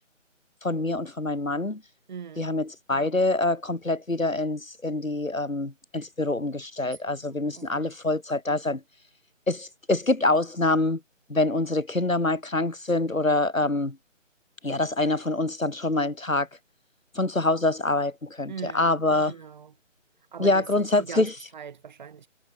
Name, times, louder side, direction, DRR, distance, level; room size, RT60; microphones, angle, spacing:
voice 1, 0.6-1.8 2.4-8.8 9.5-11.0 11.3-14.0 14.6-16.5 17.1-19.3 20.4-21.3, left 2 dB, 90° left, 4.3 m, -25 dB
voice 2, 2.1-2.5 6.8-7.9 18.5-19.0 19.3-19.7 20.3-22.3, right 7 dB, 35° right, 7.0 m, -41 dB
figure-of-eight pair, 160°, 39 cm